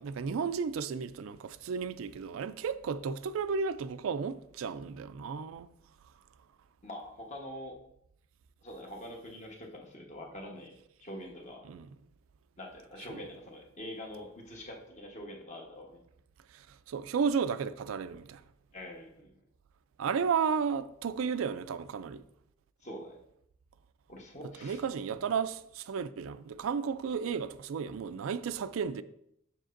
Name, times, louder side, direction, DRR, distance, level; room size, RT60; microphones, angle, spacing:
voice 1, 0.0-5.7 11.6-11.9 13.1-13.2 16.5-18.4 20.0-22.2 24.6-29.0, right 6 dB, 85° right, 0.4 m, -33 dB
voice 2, 6.8-7.8 8.6-11.6 12.6-16.0 18.7-19.3 22.8-23.2 24.1-24.8 25.1-25.2, left 1 dB, 35° left, 1.2 m, -45 dB
7.5 x 6.6 x 2.6 m
head